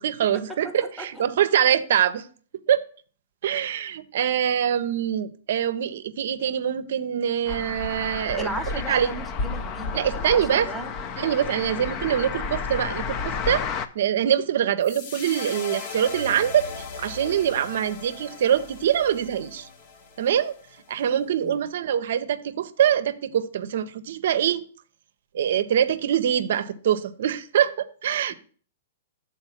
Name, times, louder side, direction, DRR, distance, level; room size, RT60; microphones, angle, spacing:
voice 1, 0.0-2.3 2.7-2.8 3.4-9.1 9.9-10.7 11.2-13.7 13.9-16.7 17.0-19.7 20.2-20.5 20.9-24.6 25.3-28.3, right 9 dB, 65° right, 0.6 m, -24 dB
sound 1, 7.5-13.9, left 5 dB, 35° left, 0.6 m, -31 dB
voice 2, 8.4-11.0 11.8-12.1 21.4-21.6, right 1 dB, ahead, 0.9 m, -36 dB
sound 2, 14.8-21.1, left 4 dB, 50° left, 1.1 m, -39 dB
7.0 x 4.3 x 5.7 m
hypercardioid pair, 130°, 0 cm